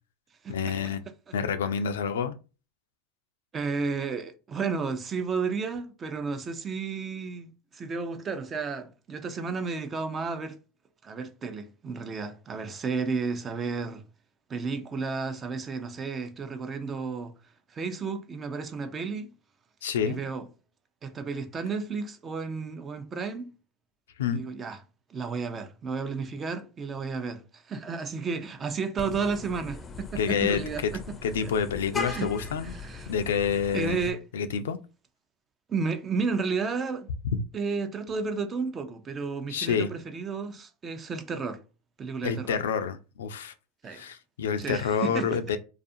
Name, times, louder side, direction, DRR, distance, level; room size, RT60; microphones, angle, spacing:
voice 1, 0.5-1.0 1.3-2.4 19.8-20.2 24.2-24.4 30.2-30.9 31.2-32.8 33.1-34.0 34.3-34.8 39.5-39.9 42.2-43.5 43.9-45.6, left 7 dB, 85° left, 0.3 m, -28 dB
voice 2, 3.5-10.6 11.0-14.0 14.5-17.3 17.7-19.3 20.0-20.5 21.0-23.5 24.3-24.8 25.1-31.0 32.0-32.3 32.7-33.1 33.7-34.2 35.7-37.1 37.5-41.6 42.0-42.6 43.8-44.0 44.6-45.3, right 4 dB, 30° right, 0.4 m, -32 dB
Vehicle horn car horn honking, 29.0-34.1, left 4 dB, 25° left, 0.5 m, -39 dB
2.4 x 2.3 x 2.6 m
hypercardioid pair, 95°, 0 cm